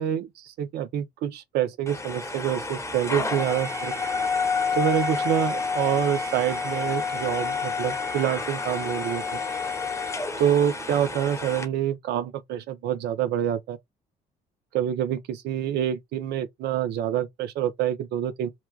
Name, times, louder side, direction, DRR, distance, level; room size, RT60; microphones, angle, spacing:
voice 1, 0.0-4.0 4.7-9.4 10.4-13.8 14.7-18.5, right 10 dB, 75° right, 0.8 m, -27 dB
sound 1, 1.9-11.7, left 4 dB, 15° left, 0.9 m, -29 dB
3.0 x 2.3 x 2.4 m
cardioid pair, 110°, 17 cm